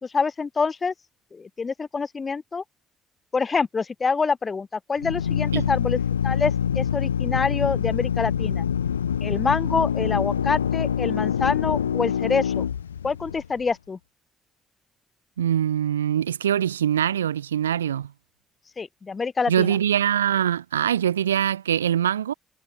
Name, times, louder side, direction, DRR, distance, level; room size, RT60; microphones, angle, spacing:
voice 1, 0.0-0.9 1.3-2.6 3.3-6.0 6.2-8.7 9.2-12.6 13.0-14.0 18.8-19.8, left 4 dB, 35° left, 3.6 m, -26 dB
Drill, 5.0-13.6, left 8 dB, 85° left, 0.7 m, -25 dB
voice 2, 15.4-18.1 19.5-22.3, right 10 dB, 85° right, 1.4 m, -23 dB
figure-of-eight pair, 45°, 0 cm